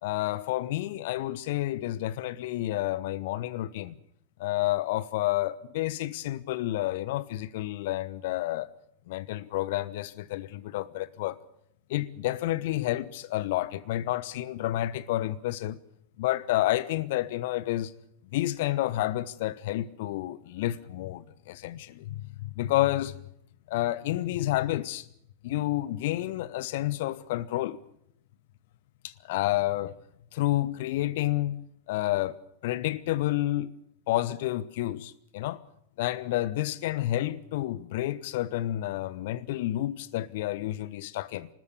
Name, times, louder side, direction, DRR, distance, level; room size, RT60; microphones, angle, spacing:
voice 1, 0.0-4.0 4.4-8.7 9.1-11.4 11.9-15.8 16.2-17.9 18.3-23.1 23.7-25.1 25.4-27.8 29.0-29.9 30.3-31.6 31.9-32.4 32.6-33.7 34.1-35.6 36.0-41.5, left 15 dB, 50° left, 1.0 m, -30 dB
24.5 x 20.0 x 7.0 m
figure-of-eight pair, 90°, 0 cm